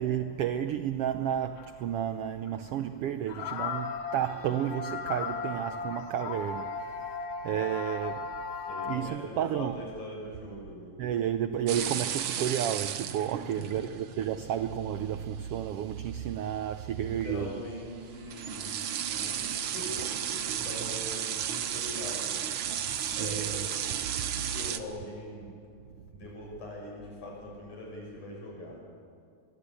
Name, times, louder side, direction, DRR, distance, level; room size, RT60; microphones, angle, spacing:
voice 1, 0.0-7.2 7.4-9.9 11.0-17.6 22.9-23.7, right 10 dB, 85° right, 1.3 m, -32 dB
sound 1, 1.6-1.7 2.5-2.6 3.3-9.0, left 5 dB, 60° left, 2.4 m, -36 dB
voice 2, 8.6-10.9 13.3-13.9 17.0-22.5 23.1-25.6 26.1-28.8, left 1 dB, 80° left, 8.1 m, -42 dB
sound 2, 11.7-24.8, right 9 dB, 65° right, 1.3 m, -34 dB
23.5 x 23.0 x 8.4 m
omnidirectional pair, 3.5 m